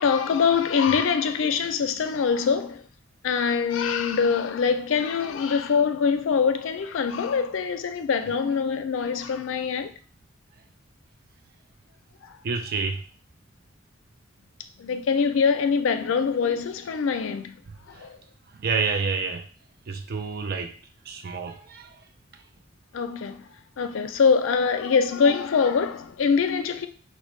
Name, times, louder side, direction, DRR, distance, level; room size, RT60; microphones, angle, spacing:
voice 1, 0.0-2.8 3.2-9.9 14.8-17.6 18.0-18.1 22.9-23.4 23.8-26.9, left 6 dB, 85° left, 0.4 m, -24 dB
voice 2, 12.4-13.0 17.9-18.1 18.5-19.5 19.9-20.8 21.0-22.1 22.3-22.4, right 5 dB, 50° right, 0.4 m, -29 dB
4.1 x 2.1 x 3.1 m
head